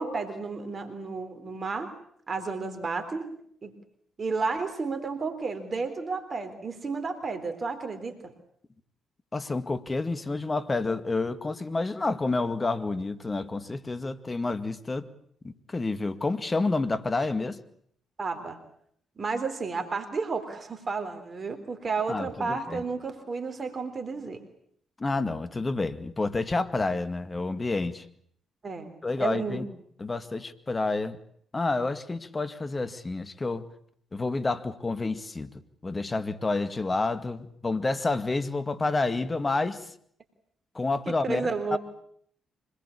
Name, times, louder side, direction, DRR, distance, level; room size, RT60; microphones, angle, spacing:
voice 1, 0.0-1.9 2.3-3.3 3.6-3.7 4.2-8.3 18.2-18.6 19.2-24.4 28.6-28.9 29.2-29.6 41.1-41.8, right 4 dB, 40° right, 7 dB, 3.6 m, -32 dB
voice 2, 9.3-15.1 15.4-17.6 22.1-22.8 25.0-28.0 29.0-29.7 30.0-31.2 31.5-33.7 34.1-35.5 35.8-39.8 40.7-41.8, left 3 dB, 30° left, 11 dB, 2.1 m, -29 dB
25.5 x 20.0 x 8.5 m, 0.65 s
hypercardioid pair, 45°, 0 cm